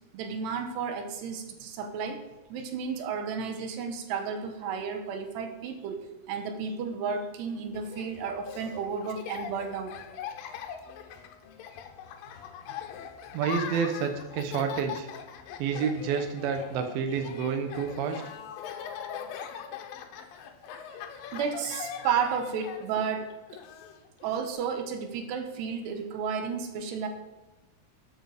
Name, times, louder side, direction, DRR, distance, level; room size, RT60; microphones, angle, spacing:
voice 1, 0.1-2.2 2.5-10.0 20.9-21.0 21.3-23.6 24.2-27.1, right 6 dB, 90° right, 7 dB, 3.2 m, -32 dB
Laughter, 7.7-24.5, left 8 dB, 70° left, 2.4 m, -41 dB
voice 2, 13.3-15.1 15.6-18.2, right 6 dB, 70° right, 6 dB, 2.9 m, -29 dB
13.0 x 8.2 x 4.9 m, 1.1 s
omnidirectional pair, 4.6 m